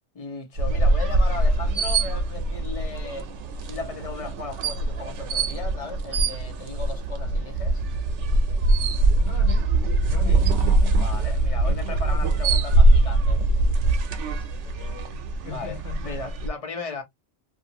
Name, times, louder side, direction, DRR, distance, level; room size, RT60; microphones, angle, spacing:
voice 1, 0.1-3.3 3.6-7.8 10.2-10.4 11.0-13.4 15.5-17.0, left 4 dB, 35° left, 0.9 m, -36 dB
sound 1, 0.6-16.5, right 2 dB, 80° right, 0.9 m, -22 dB
voice 2, 9.2-9.7 10.1-11.0 11.6-12.6 14.6-16.2, left 7 dB, 80° left, 1.0 m, -40 dB
2.5 x 2.5 x 2.7 m
omnidirectional pair, 1.2 m